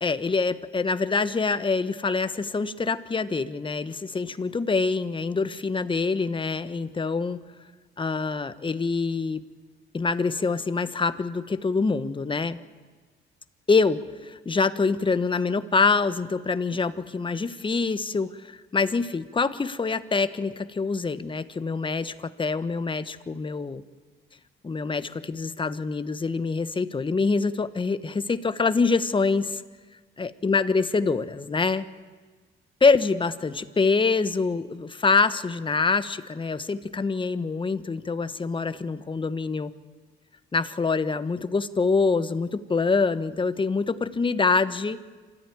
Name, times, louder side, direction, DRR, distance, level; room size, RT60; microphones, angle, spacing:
voice 1, 0.0-7.4 8.0-9.4 9.9-12.6 13.7-23.8 24.6-29.6 30.2-31.8 32.8-39.7 40.5-45.0, left 4 dB, 25° left, 12 dB, 1.1 m, -25 dB
26.5 x 14.0 x 9.4 m, 1.4 s
cardioid pair, 90°, 20 cm